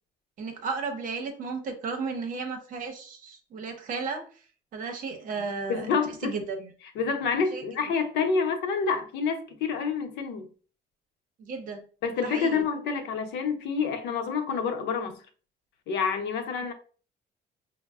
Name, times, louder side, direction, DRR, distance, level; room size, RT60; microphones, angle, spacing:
voice 1, 0.4-4.2 4.7-6.7 7.5-7.6 11.4-11.8 12.2-12.7, right 4 dB, 50° right, 0.8 m, -34 dB
voice 2, 5.7-6.4 6.9-10.5 12.0-15.2 15.9-16.7, left 5 dB, 90° left, 0.7 m, -28 dB
5.3 x 2.1 x 2.3 m
cardioid pair, 155°, 17 cm